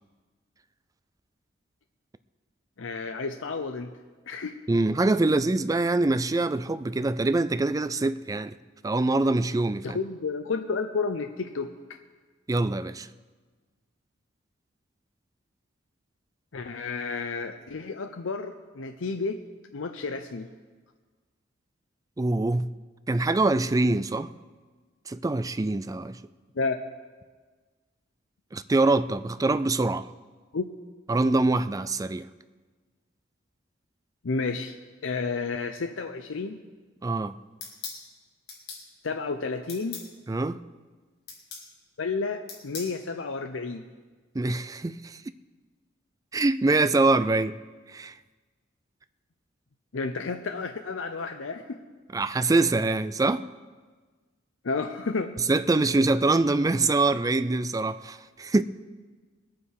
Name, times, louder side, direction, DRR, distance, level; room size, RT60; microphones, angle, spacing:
voice 1, 2.8-3.9 4.3-4.6 9.8-11.7 16.5-19.4 19.7-20.5 26.6-26.8 30.5-30.7 34.2-34.7 35.0-36.6 39.0-40.0 42.0-43.9 49.9-51.8 54.6-55.3, left 4 dB, 80° left, 0.6 m, -31 dB
voice 2, 4.7-8.6 8.8-10.0 12.5-13.1 22.2-22.7 23.1-24.3 25.1-26.2 28.5-30.1 31.1-32.3 37.0-37.4 40.3-40.6 44.3-45.2 46.3-47.6 47.9-48.2 52.1-53.5 55.5-58.6, right 2 dB, 20° right, 0.4 m, -24 dB
sound 1, 37.6-38.0 38.5-38.8 39.7-40.1 41.3-41.7 42.5-42.9, left 5 dB, 60° left, 2.8 m, -39 dB
21.0 x 8.4 x 4.8 m
head